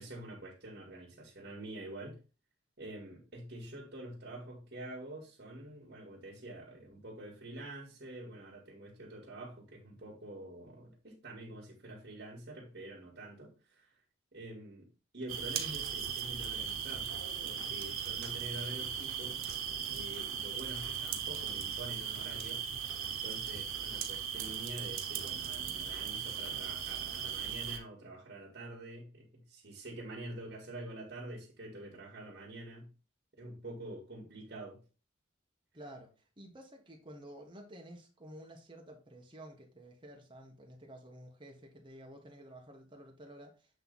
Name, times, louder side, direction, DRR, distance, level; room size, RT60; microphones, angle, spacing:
voice 1, 0.0-2.2 2.8-13.9 14.3-14.9 15.1-19.4 19.9-22.6 23.0-32.9 33.4-34.8, right 1 dB, 50° right, 2.0 m, -47 dB
sound 1, 15.3-27.8, right 8 dB, 90° right, 1.0 m, -38 dB
voice 2, 35.7-43.7, right 1 dB, 25° right, 1.4 m, -52 dB
7.8 x 3.3 x 4.0 m
head